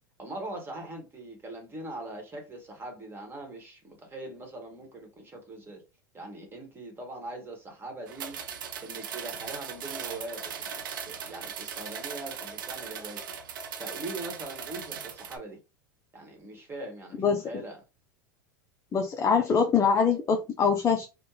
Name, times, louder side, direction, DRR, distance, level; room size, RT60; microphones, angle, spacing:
voice 1, 0.2-5.8 6.1-8.4 8.8-13.2 13.8-15.6 16.1-17.8, right 2 dB, 20° right, 1.3 m, -41 dB
sound 1, 8.1-15.4, right 7 dB, 75° right, 0.6 m, -39 dB
voice 2, 18.9-21.0, left 6 dB, 25° left, 0.5 m, -23 dB
3.3 x 2.1 x 3.0 m
hypercardioid pair, 95°, 11 cm